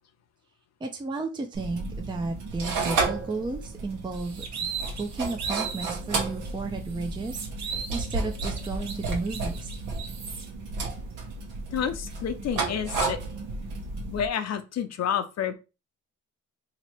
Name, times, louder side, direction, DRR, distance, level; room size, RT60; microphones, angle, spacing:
voice 1, 0.8-4.5 5.0-9.7, right 3 dB, 15° right, 3 dB, 0.6 m, -33 dB
sound 1, 1.5-14.3, right 3 dB, 85° right, 1.1 m, -32 dB
sound 2, 4.1-6.0 6.4-6.5 6.9-10.4, right 6 dB, 60° right, 1.0 m, -37 dB
voice 2, 11.7-13.2 14.1-15.5, left 8 dB, 60° left, 9 dB, 0.7 m, -29 dB
3.0 x 2.9 x 4.4 m, 0.29 s
cardioid pair, 90°, 30 cm